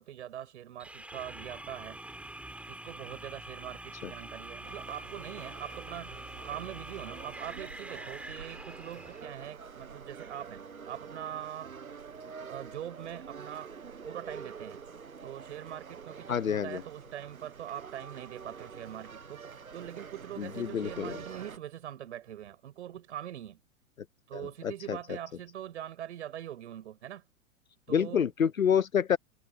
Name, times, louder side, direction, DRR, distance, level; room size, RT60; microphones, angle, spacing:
voice 1, 0.0-2.0 2.7-6.1 6.4-11.7 12.5-13.7 14.1-14.8 15.2-23.6 24.3-27.2 27.9-28.3, right 11 dB, 55° right, 6.9 m, -43 dB
sound 1, 0.8-9.3, right 1 dB, 5° right, 6.7 m, -45 dB
sound 2, 4.6-21.6, right 6 dB, 75° right, 1.4 m, -46 dB
voice 2, 16.3-16.8 20.4-21.2 24.3-24.4 24.9-25.0 27.9-29.2, left 8 dB, 75° left, 1.0 m, -27 dB
figure-of-eight pair, 105°, 42 cm